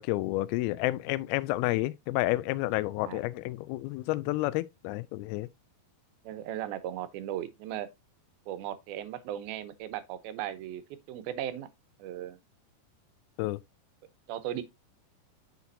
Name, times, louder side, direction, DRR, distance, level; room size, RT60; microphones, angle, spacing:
voice 1, 0.0-5.5 13.4-13.6, left 18 dB, 85° left, 2.4 m, -30 dB
voice 2, 6.2-7.9 8.5-10.8 11.1-11.7 12.0-12.4 14.3-14.6, right 11 dB, 80° right, 2.6 m, -37 dB
8.2 x 5.9 x 2.6 m
omnidirectional pair, 4.4 m